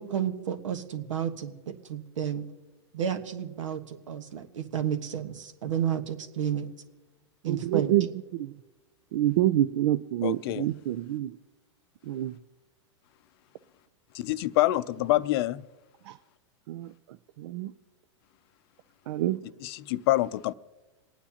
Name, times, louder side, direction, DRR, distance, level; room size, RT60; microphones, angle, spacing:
voice 1, 0.0-2.4 2.9-6.7 7.4-7.9, right 9 dB, 80° right, 1.3 m, -31 dB
voice 2, 7.5-8.1 9.1-11.3 12.1-12.3 16.7-16.9 17.4-17.7 19.1-19.4, right 13 dB, 60° right, 0.5 m, -26 dB
voice 3, 10.2-10.7 14.1-15.6 19.6-20.5, left 16 dB, 50° left, 0.5 m, -26 dB
27.5 x 9.4 x 2.9 m
hypercardioid pair, 130°, 16 cm